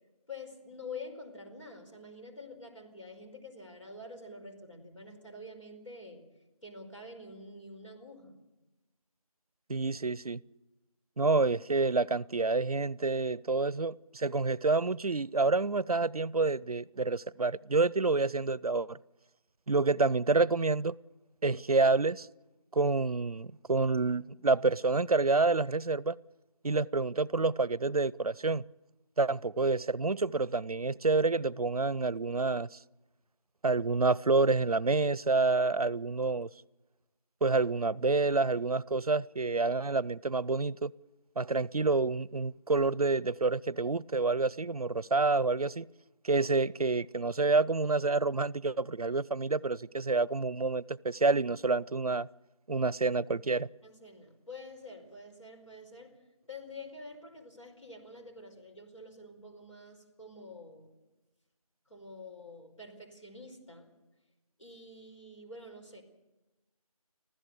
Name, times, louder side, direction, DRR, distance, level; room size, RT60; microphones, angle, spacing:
voice 1, 0.3-6.2 6.6-8.4 53.8-56.2 56.5-60.9 61.9-63.9 64.6-66.0, left 2 dB, 60° left, 4.9 m, -47 dB
voice 2, 9.7-10.4 11.2-19.0 19.7-21.0 21.4-22.3 22.7-26.2 26.6-28.6 29.2-32.8 33.6-36.5 37.4-40.9 41.4-45.9 46.2-52.3 52.7-53.7, right 3 dB, 85° right, 0.6 m, -28 dB
25.5 x 15.5 x 6.8 m
figure-of-eight pair, 175°, 19 cm